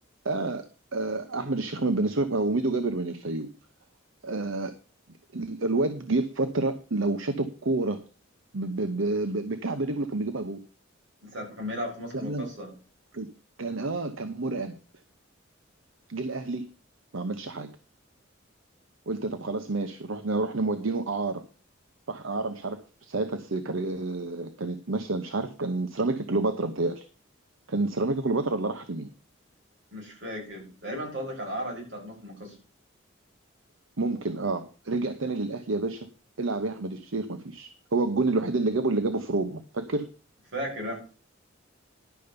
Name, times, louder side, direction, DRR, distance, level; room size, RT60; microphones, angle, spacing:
voice 1, 0.2-0.7 0.9-3.5 4.2-4.7 5.3-8.0 8.5-10.6 12.2-12.5 13.1-13.3 13.6-14.8 16.1-16.6 17.1-17.7 19.1-21.4 22.1-27.0 27.7-29.1 34.0-36.1 36.4-40.1, right 2 dB, 80° right, 9 dB, 0.9 m, -29 dB
voice 2, 11.2-12.7 29.9-32.6 40.5-41.0, equal, 65° right, 0 dB, 5.9 m, -35 dB
11.5 x 5.2 x 6.8 m, 0.37 s
head